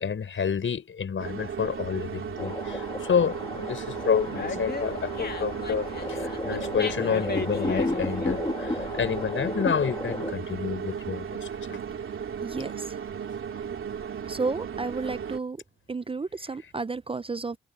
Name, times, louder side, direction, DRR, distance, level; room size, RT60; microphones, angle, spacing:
voice 1, 0.0-11.3 11.7-11.8, left 7 dB, 70° left, 5.8 m, -29 dB
sound 1, 1.2-15.4, right 7 dB, 75° right, 2.8 m, -35 dB
sound 2, 2.4-10.3, left 2 dB, 20° left, 2.6 m, -34 dB
Dog, 3.9-9.3, left 4 dB, 50° left, 2.2 m, -37 dB
voice 2, 12.4-12.7 14.3-15.6 15.9-17.6, right 4 dB, 25° right, 0.5 m, -31 dB
cardioid pair, 60°, 21 cm